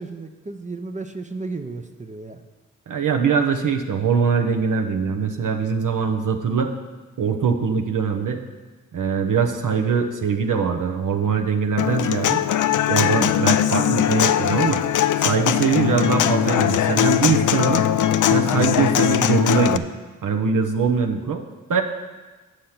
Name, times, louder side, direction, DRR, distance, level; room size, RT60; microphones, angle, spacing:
voice 1, 0.0-2.4, right 3 dB, 20° right, 6 dB, 0.6 m, -33 dB
voice 2, 2.9-6.7 7.2-8.4 8.9-12.4 12.9-14.8 15.2-17.8 18.3-19.8 20.2-21.4 21.7-21.8, right 6 dB, 70° right, 3 dB, 0.9 m, -22 dB
Human voice / Acoustic guitar, 11.8-19.8, left 11 dB, 65° left, 0.5 m, -20 dB
8.9 x 6.5 x 5.8 m, 1.3 s
cardioid pair, 65°, 33 cm